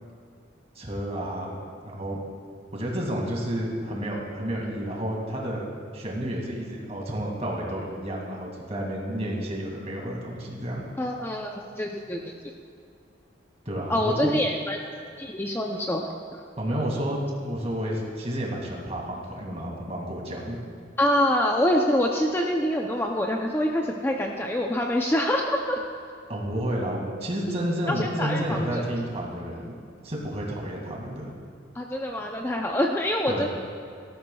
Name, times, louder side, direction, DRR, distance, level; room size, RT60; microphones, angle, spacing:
voice 1, 0.8-1.6 1.8-2.2 2.7-5.6 5.9-10.8 13.7-14.4 16.6-20.6 26.3-29.8 30.0-31.3 33.3-33.5, equal, 35° right, -1 dB, 2.1 m, -30 dB
voice 2, 11.0-12.3 13.9-14.8 15.2-16.1 21.0-25.8 27.9-28.6 31.7-33.5, left 1 dB, 10° left, 1 dB, 0.5 m, -25 dB
17.0 x 13.0 x 2.3 m, 2.4 s
head